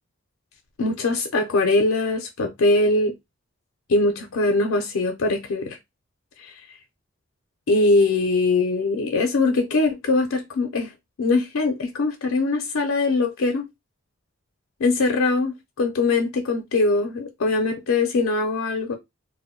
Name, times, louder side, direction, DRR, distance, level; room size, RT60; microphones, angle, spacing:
voice 1, 0.8-3.1 3.9-5.8 6.4-6.5 7.7-10.9 11.2-13.6 14.8-18.9, left 3 dB, 90° left, 0.5 m, -22 dB
2.2 x 2.0 x 3.6 m
head